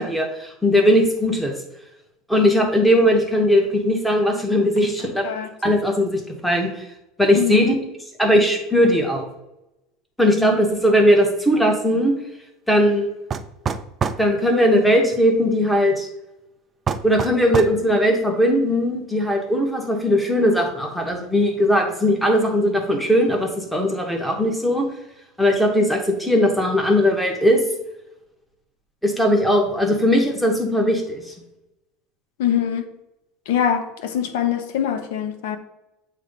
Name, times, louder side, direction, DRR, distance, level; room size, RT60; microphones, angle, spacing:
voice 1, 0.0-1.5 2.3-5.2 5.6-6.7 7.2-7.7 8.2-9.2 10.2-12.1 12.7-13.1 14.2-16.1 17.0-24.8 25.4-27.6 29.0-31.3, equal, 5° left, 0.9 m, -19 dB
voice 2, 7.3-7.7 10.3-10.6 32.4-32.8 33.5-35.6, left 9 dB, 75° left, 0.9 m, -23 dB
sound 1, 13.3-14.3 16.9-17.8, right 6 dB, 20° right, 0.3 m, -25 dB
8.4 x 3.1 x 5.2 m
supercardioid pair, 165°, 0 cm